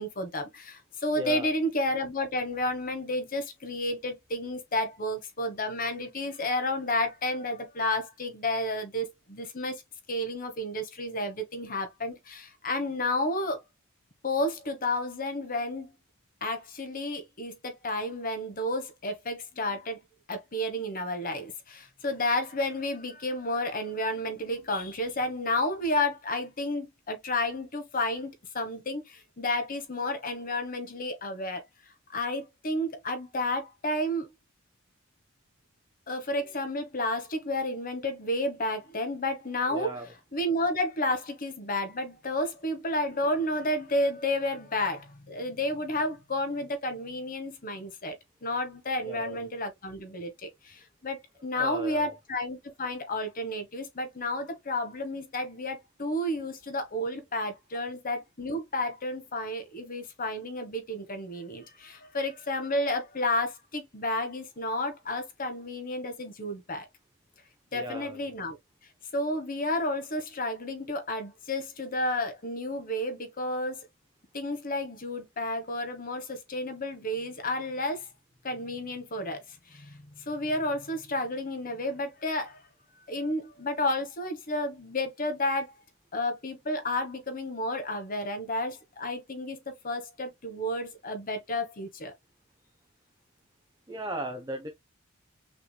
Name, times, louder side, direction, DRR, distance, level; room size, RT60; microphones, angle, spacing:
voice 1, 0.0-9.8 10.1-13.6 14.2-15.9 16.4-20.0 20.3-31.6 32.1-34.3 36.1-39.9 40.3-48.1 48.4-66.8 67.7-68.6 69.1-73.8 74.3-78.0 78.4-79.4 79.7-79.9 80.3-82.6 83.1-85.7 86.1-92.1, left 1 dB, 40° left, 1.3 m, -31 dB
voice 2, 1.1-1.5 39.7-40.1 49.1-49.5 51.5-52.1 67.7-68.2 93.9-94.7, equal, 15° right, 0.8 m, -36 dB
5.8 x 3.3 x 2.2 m
head